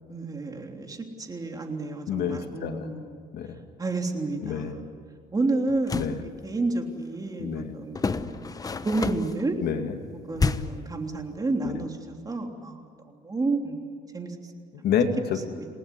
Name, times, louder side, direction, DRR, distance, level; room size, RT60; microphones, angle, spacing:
voice 1, 0.1-3.2 3.8-4.8 5.3-8.5 8.8-9.6 10.3-12.8 13.1-13.8 14.1-14.3 15.5-15.7, right 2 dB, 20° right, 3 dB, 3.3 m, -30 dB
voice 2, 2.1-2.9 3.3-3.6 4.4-4.7 5.9-6.2 7.4-7.8 9.6-10.0 11.6-11.8 14.7-15.4, left 8 dB, 70° left, 6 dB, 2.3 m, -28 dB
sound 1, 5.7-6.2 7.9-9.4 10.4-10.9, left 4 dB, 20° left, 1.0 m, -29 dB
28.5 x 18.5 x 9.9 m, 2.3 s
cardioid pair, 110°, 17 cm